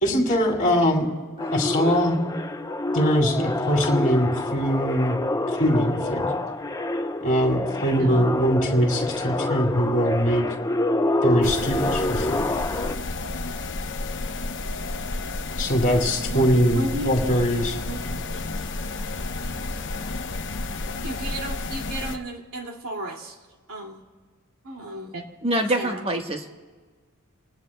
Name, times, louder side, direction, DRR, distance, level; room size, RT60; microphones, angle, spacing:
voice 1, 0.0-1.1 1.5-2.2 2.9-5.2 5.5-6.3 7.2-10.5 11.2-12.4 15.6-17.7, equal, 35° left, 1 dB, 2.6 m, -22 dB
sound 1, 1.4-12.9, left 2 dB, 15° left, 0.6 m, -27 dB
sound 2, 11.4-22.2, left 3 dB, 55° left, 0.9 m, -31 dB
voice 2, 15.9-17.4 17.8-18.0 21.0-23.4 23.7-24.0 24.6-25.2 25.7-26.0, right 1 dB, 70° right, 1 dB, 2.3 m, -34 dB
voice 3, 25.4-26.6, right 1 dB, 25° right, 3 dB, 1.3 m, -25 dB
30.0 x 19.0 x 2.2 m, 1.4 s
head